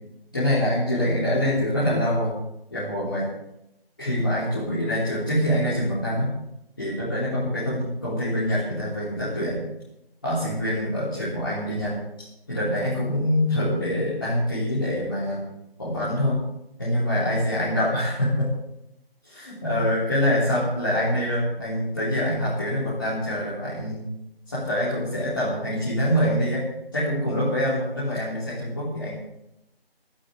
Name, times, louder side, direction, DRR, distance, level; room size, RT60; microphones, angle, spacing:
voice 1, 0.3-2.3 2.7-3.2 4.0-6.3 6.8-9.6 10.2-11.9 12.5-15.4 15.8-16.4 16.8-18.5 19.3-24.1 24.5-26.6 26.9-29.1, equal, 20° left, -10 dB, 3.6 m, -25 dB
22.5 x 13.0 x 3.5 m, 0.84 s
figure-of-eight pair, 175°, 30 cm